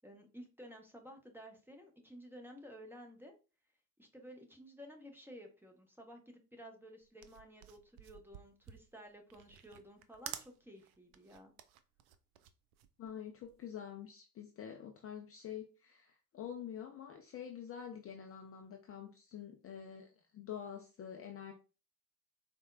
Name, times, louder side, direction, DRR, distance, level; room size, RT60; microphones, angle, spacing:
voice 1, 0.0-3.3 4.0-11.5, equal, 5° right, 2 dB, 0.8 m, -54 dB
sound 1, 7.0-13.7, right 11 dB, 60° right, 0.5 m, -51 dB
voice 2, 13.0-21.5, left 9 dB, 30° left, 3 dB, 0.5 m, -47 dB
4.2 x 2.1 x 2.4 m, 0.33 s
figure-of-eight pair, 50°, 46 cm